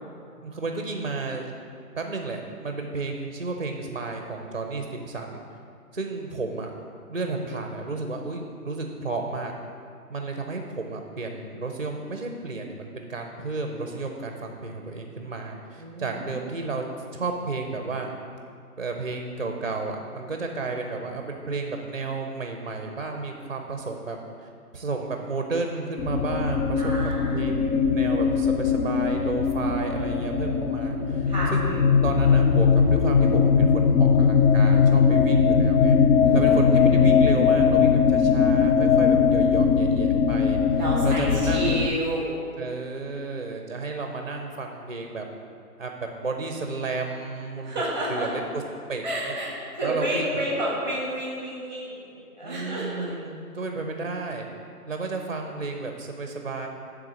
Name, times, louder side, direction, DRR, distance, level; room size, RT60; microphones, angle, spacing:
voice 1, 0.4-1.5 1.9-5.4 5.9-6.7 7.1-9.5 10.1-16.9 17.1-18.1 18.8-36.0 36.3-41.9 42.6-45.2 45.8-45.9 46.2-47.7 48.1-48.6 48.9-49.4 49.8-50.4 52.4-54.5 54.9-56.7, right 3 dB, 40° right, 3 dB, 0.5 m, -32 dB
voice 2, 15.8-16.3 26.8-27.7 31.3-31.5 36.2-36.6 40.8-42.5 47.6-48.3 49.0-53.1, right 1 dB, 10° left, -5 dB, 1.0 m, -30 dB
sound 1, 26.0-41.9, left 6 dB, 85° left, 0.7 m, -20 dB
10.0 x 3.6 x 6.1 m, 2.4 s
figure-of-eight pair, 155°, 46 cm